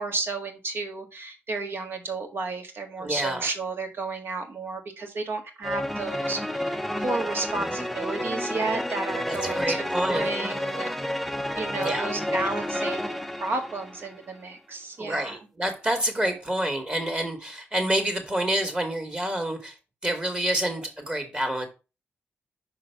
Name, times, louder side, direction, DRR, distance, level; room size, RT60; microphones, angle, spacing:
voice 1, 0.0-10.9 11.5-15.4, right 3 dB, 55° right, 1.7 m, -32 dB
voice 2, 3.0-3.5 9.3-10.3 11.8-12.1 15.0-19.8 20.0-21.7, right 1 dB, 25° right, 2.1 m, -28 dB
sound 1, 5.6-14.2, equal, ahead, 0.6 m, -30 dB
5.7 x 3.7 x 5.9 m
cardioid pair, 80°, 4 cm